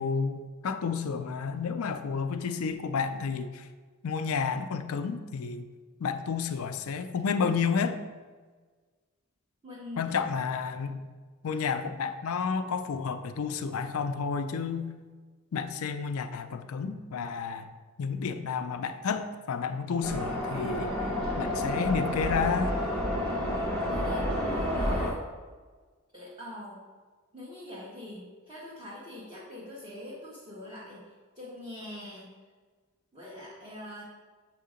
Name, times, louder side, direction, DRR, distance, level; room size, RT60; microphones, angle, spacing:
voice 1, 0.0-3.7 4.0-5.7 6.0-8.0 10.0-11.0 11.4-14.9 15.5-17.7 18.0-20.9 21.4-22.7, left 5 dB, 75° left, 8 dB, 0.4 m, -31 dB
voice 2, 9.6-10.2 23.9-25.2 26.1-26.8 27.3-32.3 33.1-34.0, left 1 dB, 20° right, -8 dB, 1.1 m, -43 dB
sound 1, 20.0-25.1, left 1 dB, 70° right, 1.2 m, -30 dB
7.2 x 2.8 x 5.0 m, 1.4 s
head